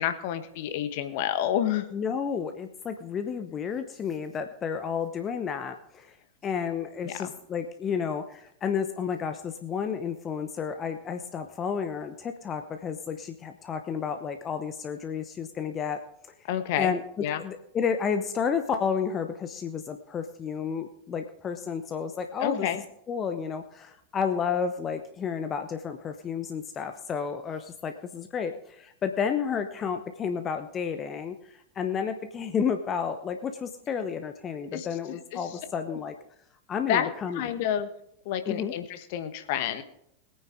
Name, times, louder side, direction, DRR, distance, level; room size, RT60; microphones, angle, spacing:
voice 1, 0.0-1.9 7.0-7.3 16.5-16.9 17.2-17.4 22.4-22.8 34.7-35.6 35.9-36.0 36.8-37.1 37.3-37.9 38.2-39.8, left 10 dB, 50° left, 9 dB, 1.3 m, -29 dB
voice 2, 1.9-6.2 6.4-16.0 16.4-16.5 16.8-17.0 17.4-22.7 23.1-36.1 36.7-37.4 38.5-38.7, left 6 dB, 25° left, 8 dB, 0.9 m, -31 dB
21.0 x 9.6 x 3.6 m, 0.75 s
figure-of-eight pair, 90°, 0 cm